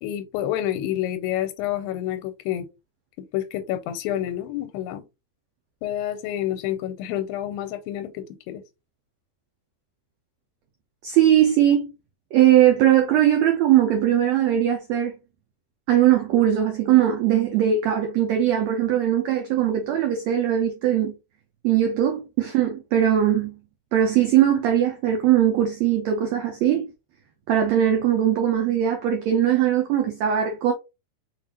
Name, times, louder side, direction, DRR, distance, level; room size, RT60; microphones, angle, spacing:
voice 1, 0.0-2.7 3.2-5.0 5.8-8.6, left 12 dB, 85° left, 2.3 m, -28 dB
voice 2, 11.0-11.9 12.3-15.1 15.9-21.1 21.6-23.5 23.9-26.9 27.5-30.7, right 11 dB, 90° right, 1.5 m, -20 dB
5.8 x 2.4 x 2.8 m
omnidirectional pair, 4.0 m